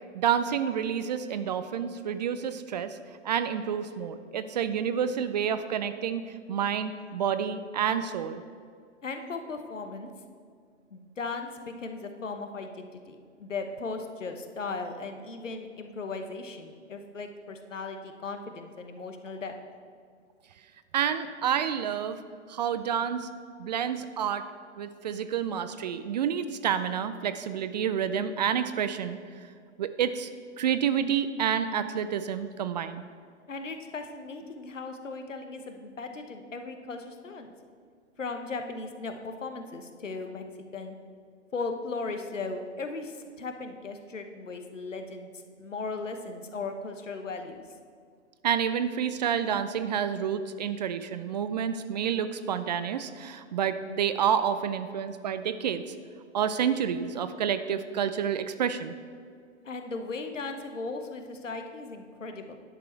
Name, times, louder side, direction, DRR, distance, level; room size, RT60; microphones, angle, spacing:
voice 1, 0.1-3.0 3.2-8.4 20.9-22.2 22.5-23.3 23.6-24.4 24.8-29.2 29.8-30.3 30.6-33.0 48.4-55.9 56.3-58.9, right 8 dB, 35° right, 11 dB, 0.4 m, -29 dB
voice 2, 9.0-10.1 10.9-19.5 33.5-37.5 38.2-40.4 40.7-41.0 41.5-45.3 45.6-47.6 59.6-62.6, left 3 dB, 80° left, 6 dB, 1.1 m, -37 dB
10.5 x 6.6 x 4.4 m, 2.1 s
figure-of-eight pair, 115°, 37 cm